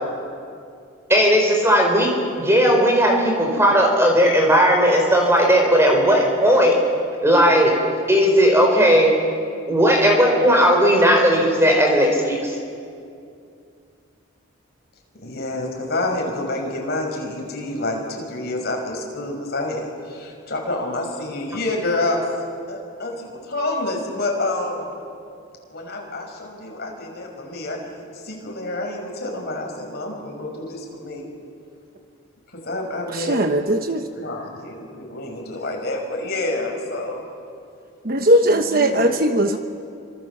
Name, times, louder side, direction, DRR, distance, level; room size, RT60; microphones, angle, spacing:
voice 1, 1.1-6.8 7.2-7.7 8.1-9.1 9.7-12.4, equal, 10° right, 1 dB, 4.6 m, -16 dB
voice 2, 15.2-22.2 22.7-25.0 25.7-27.8 28.1-31.3 32.5-33.4 34.1-37.2 38.4-39.1, left 2 dB, 45° left, 1 dB, 5.9 m, -28 dB
voice 3, 33.1-34.0 38.0-39.6, right 1 dB, 45° right, 6 dB, 1.1 m, -19 dB
28.5 x 26.0 x 7.3 m, 2.4 s
head